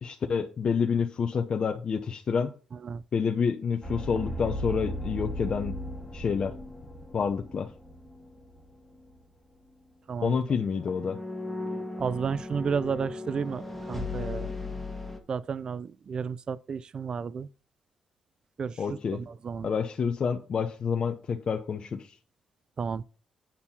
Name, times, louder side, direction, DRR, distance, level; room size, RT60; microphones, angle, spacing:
voice 1, 0.0-2.5 3.1-5.7 6.1-6.5 7.1-7.7 10.2-11.2 18.8-19.2 19.6-22.1, left 6 dB, 45° left, 0.7 m, -28 dB
sound 1, 3.8-8.7 8.9-9.2 10.6-15.2, left 1 dB, 5° left, 1.5 m, -37 dB
voice 2, 12.0-14.5 15.3-17.5 18.6-19.7 22.8-23.0, right 6 dB, 40° right, 0.4 m, -32 dB
8.9 x 4.3 x 5.6 m
cardioid pair, 120°, 2 cm